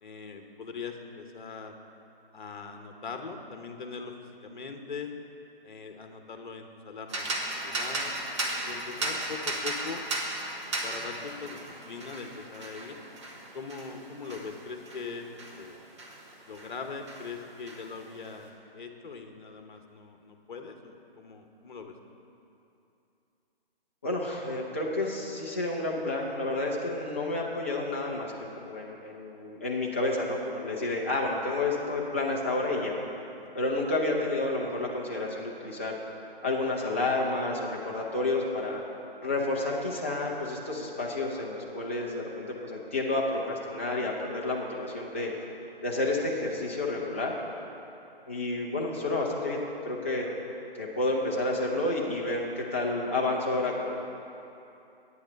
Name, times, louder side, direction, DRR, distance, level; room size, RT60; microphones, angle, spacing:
voice 1, 0.0-1.8 2.3-5.1 5.6-8.1 8.6-10.1 10.8-13.0 13.5-15.8 16.4-21.9 33.4-33.5, left 5 dB, 55° left, 5 dB, 1.1 m, -41 dB
sound 1, 7.1-16.8 17.1-18.3, right 2 dB, 30° right, 1.1 m, -36 dB
voice 2, 24.0-32.9 33.5-36.0 36.4-38.8 39.2-45.3 45.8-47.3 48.3-50.3 50.8-54.2, left 2 dB, 15° left, -4 dB, 0.5 m, -30 dB
10.5 x 8.6 x 5.2 m, 2.8 s
figure-of-eight pair, 155°, 30 cm